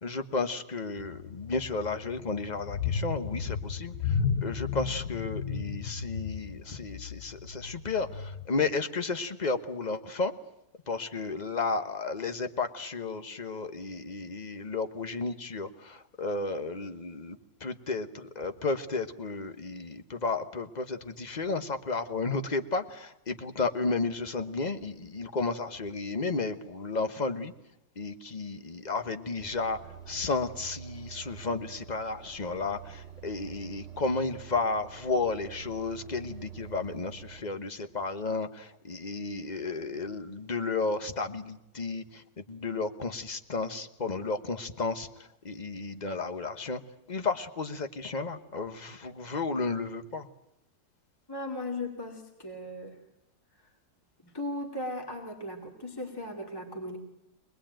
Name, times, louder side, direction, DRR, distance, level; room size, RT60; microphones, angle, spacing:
voice 1, 0.0-4.1 4.4-10.3 10.9-27.5 28.0-29.8 30.1-45.1 45.4-46.8 47.1-50.3, left 3 dB, 30° left, 9 dB, 1.1 m, -33 dB
sound 1, 1.0-8.5, left 6 dB, 60° left, 1.5 m, -34 dB
sound 2, 29.4-37.4, right 9 dB, 35° right, 1.9 m, -47 dB
voice 2, 51.3-53.0 54.2-57.0, left 1 dB, 10° left, 2 dB, 2.5 m, -37 dB
24.0 x 20.0 x 9.0 m, 0.83 s
omnidirectional pair, 1.9 m